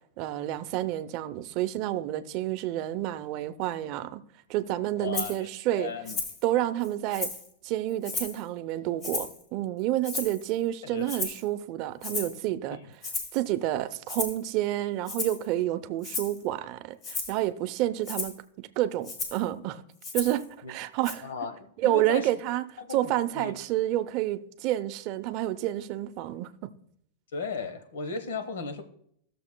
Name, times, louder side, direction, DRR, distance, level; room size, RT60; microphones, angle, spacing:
voice 1, 0.2-4.2 4.5-5.9 6.4-7.3 7.6-12.8 13.3-19.8 20.1-21.3 21.8-26.7, right 14 dB, 45° right, 0.6 m, -29 dB
voice 2, 5.0-5.5 5.8-6.2 10.8-11.1 20.6-20.7 21.2-22.3 22.8-23.0 23.3-23.5 27.3-28.8, left 4 dB, 90° left, 1.1 m, -35 dB
Rattle (instrument), 5.1-5.4 6.0-6.4 6.8-7.5 8.0-8.4 9.0-9.4 10.0-10.5 11.1-11.4 12.0-12.4 13.0-13.4 14.1-14.4 15.0-15.4 16.0-16.4 17.0-17.4 18.0-18.4 19.0-19.4 20.0-20.4 21.0-21.1, left 4 dB, 35° left, 1.4 m, -34 dB
16.5 x 6.8 x 2.2 m
supercardioid pair, 150°, 0 cm